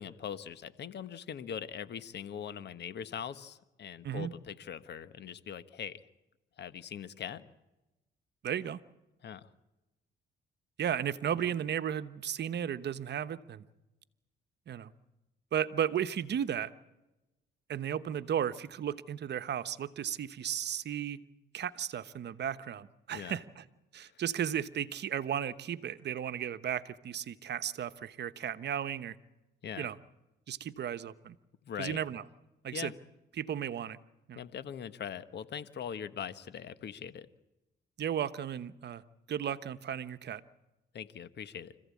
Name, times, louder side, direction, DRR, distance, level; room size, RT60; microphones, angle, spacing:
voice 1, 0.0-6.0 6.6-7.5 9.2-9.5 11.4-11.5 23.1-23.4 24.1-24.2 29.6-29.9 31.6-32.0 32.7-32.9 34.3-37.3 40.9-41.7, left 8 dB, 60° left, 13 dB, 1.3 m, -41 dB
voice 2, 8.4-8.8 10.8-13.6 14.7-14.9 15.5-16.7 17.7-21.2 21.5-23.6 23.9-29.2 29.8-30.0 30.5-31.4 31.8-32.2 32.6-32.9 33.4-34.0 34.3-34.5 38.0-39.0 39.3-40.4, right 9 dB, 60° right, 12 dB, 1.1 m, -34 dB
26.0 x 15.5 x 8.5 m, 1.0 s
cardioid pair, 90°, 20 cm